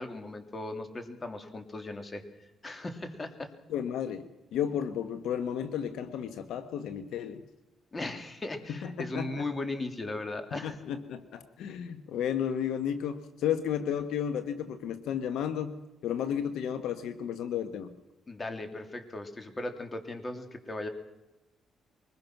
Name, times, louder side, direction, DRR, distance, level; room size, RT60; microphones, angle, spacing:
voice 1, 0.0-2.2 2.6-3.5 7.9-10.8 18.3-20.9, left 2 dB, 25° left, 7 dB, 2.9 m, -37 dB
voice 2, 3.7-7.4 8.8-9.4 10.5-18.0, left 9 dB, 80° left, 10 dB, 1.3 m, -33 dB
23.5 x 20.5 x 6.0 m, 1.0 s
cardioid pair, 90°, 0 cm